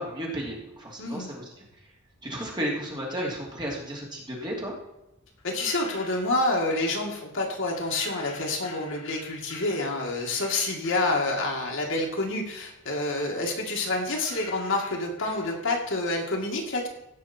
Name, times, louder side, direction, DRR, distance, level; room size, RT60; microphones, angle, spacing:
voice 1, 0.0-1.5 2.2-4.7, equal, 20° right, -3 dB, 2.7 m, -33 dB
voice 2, 1.0-1.3 5.4-16.9, left 2 dB, 60° left, 0 dB, 2.1 m, -28 dB
sound 1, 5.4-6.6 7.6-11.8 12.2-15.9, left 3 dB, 75° left, 2.9 m, -47 dB
16.0 x 6.1 x 4.4 m, 0.88 s
head